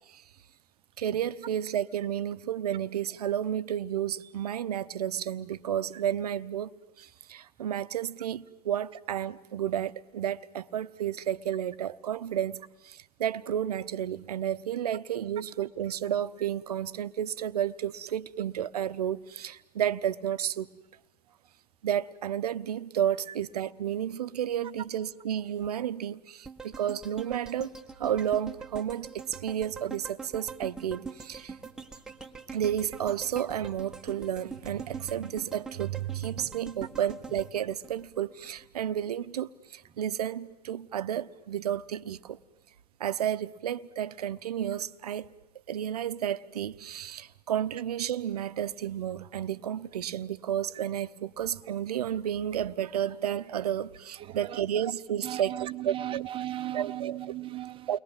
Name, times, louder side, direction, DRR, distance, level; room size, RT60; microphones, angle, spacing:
voice 1, 1.0-20.7 21.8-31.6 32.5-42.4 43.0-45.3 45.7-56.2 56.7-57.3 57.9-58.0, right 10 dB, 65° right, 0.9 m, -32 dB
sound 1, 26.4-38.6 39.0-39.1, right 4 dB, 5° right, 1.3 m, -44 dB
voice 2, 54.3-54.6 55.2-57.9, right 14 dB, 25° right, 0.9 m, -36 dB
30.0 x 22.0 x 9.0 m
figure-of-eight pair, 95°, 21 cm